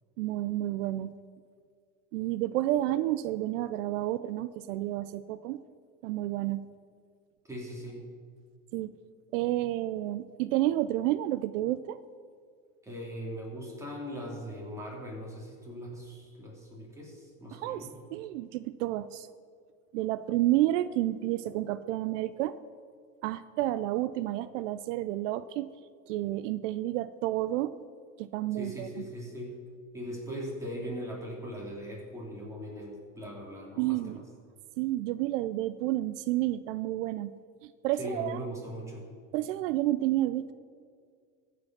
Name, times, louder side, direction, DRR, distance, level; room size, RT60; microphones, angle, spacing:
voice 1, 0.2-1.1 2.1-5.6 6.0-6.6 8.7-8.9 9.3-12.0 17.5-19.3 19.9-22.6 23.2-25.7 26.1-27.7 28.2-28.9 33.8-34.3 34.8-37.3 37.6-38.4 39.3-40.5, right 15 dB, 75° right, 14 dB, 0.5 m, -30 dB
voice 2, 7.4-8.0 12.8-17.9 28.5-29.6 29.9-34.2 38.0-39.0, equal, 10° right, -3 dB, 2.7 m, -40 dB
15.0 x 5.2 x 5.9 m, 2.1 s
supercardioid pair, 125°, 37 cm